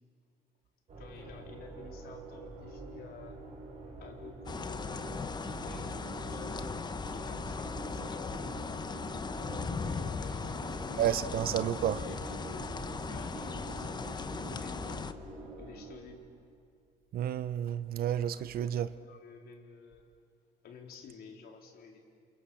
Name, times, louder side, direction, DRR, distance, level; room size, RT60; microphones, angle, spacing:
sound 1, 0.9-16.5, right 3 dB, 40° right, 6.2 m, -46 dB
voice 1, 1.0-3.4 4.0-6.8 7.1-8.6 9.8-11.4 12.0-15.0 15.6-16.3 18.3-20.1 20.6-22.0, left 5 dB, 65° left, 4.2 m, -52 dB
sound 2, 4.5-15.1, left 4 dB, 25° left, 1.1 m, -38 dB
voice 2, 11.0-12.1 17.1-18.9, right 10 dB, 60° right, 1.0 m, -31 dB
29.0 x 28.0 x 7.3 m
cardioid pair, 110°, 17 cm